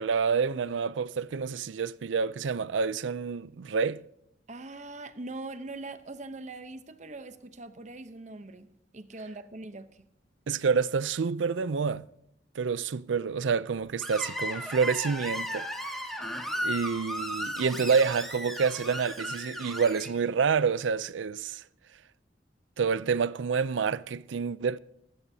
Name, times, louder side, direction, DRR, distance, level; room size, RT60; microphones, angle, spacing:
voice 1, 0.0-4.0 10.5-12.1 12.6-16.1 16.6-21.6 22.8-24.8, right 5 dB, 90° right, 0.5 m, -28 dB
voice 2, 4.5-10.1, right 2 dB, 40° right, 0.8 m, -42 dB
Screech, 14.0-20.1, equal, ahead, 1.9 m, -35 dB
17.5 x 16.0 x 2.8 m
head